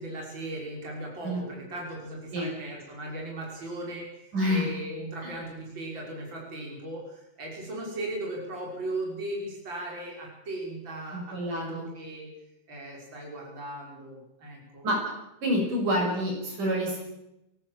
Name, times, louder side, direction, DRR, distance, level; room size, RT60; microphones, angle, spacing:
voice 1, 0.0-12.3 12.7-14.9, right 1 dB, 30° right, -1 dB, 6.4 m, -37 dB
voice 2, 4.3-4.7 5.2-5.4 11.1-11.9 14.8-15.0 15.4-17.0, equal, 60° right, 0 dB, 7.6 m, -27 dB
23.5 x 18.5 x 7.6 m, 0.89 s
omnidirectional pair, 4.0 m